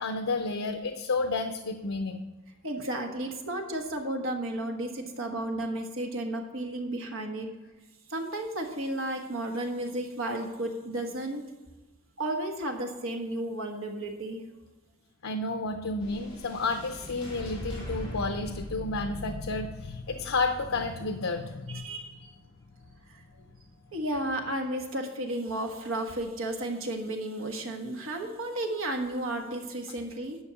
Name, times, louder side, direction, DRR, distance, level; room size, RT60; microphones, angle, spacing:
voice 1, 0.0-2.2 15.2-21.9, left 3 dB, 85° left, 6 dB, 0.7 m, -31 dB
voice 2, 2.6-7.5 8.1-11.4 12.2-14.4 21.7-22.3 23.1-23.2 23.9-30.4, right 1 dB, 80° right, 3 dB, 1.5 m, -33 dB
sound 1, 16.0-24.4, equal, 30° left, 3.0 m, -43 dB
10.5 x 5.4 x 7.0 m, 1.2 s
head